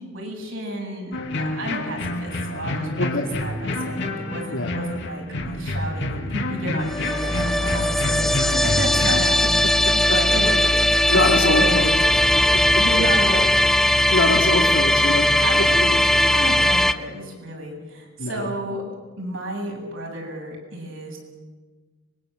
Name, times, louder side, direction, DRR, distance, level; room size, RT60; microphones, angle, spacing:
voice 1, 0.0-3.1 3.4-10.6 10.9-11.8 12.8-13.5 15.4-18.8 19.2-21.2, right 1 dB, 65° right, 0 dB, 7.6 m, -31 dB
sound 1, 1.1-9.2, left 2 dB, 55° left, 2.4 m, -28 dB
voice 2, 3.0-3.3 4.5-4.7 9.8-10.2 11.1-12.0 12.3-12.8 14.1-15.3 15.6-15.9 18.2-18.5, left 2 dB, 70° left, 2 dB, 2.6 m, -24 dB
sound 2, 6.9-16.9, left 1 dB, ahead, 0.6 m, -19 dB
24.5 x 22.0 x 7.8 m, 1.3 s
head